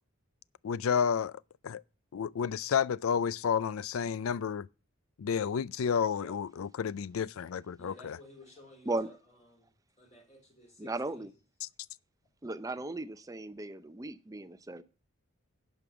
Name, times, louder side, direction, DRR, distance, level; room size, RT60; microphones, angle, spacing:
voice 1, 0.6-1.8 2.1-4.7 5.2-8.2 11.6-11.7, left 7 dB, 75° left, 0.4 m, -31 dB
voice 2, 7.8-9.7 10.0-11.3, left 2 dB, 30° left, 3.8 m, -54 dB
voice 3, 10.8-11.3 12.4-14.8, right 2 dB, 15° right, 0.6 m, -36 dB
11.0 x 5.3 x 6.8 m
head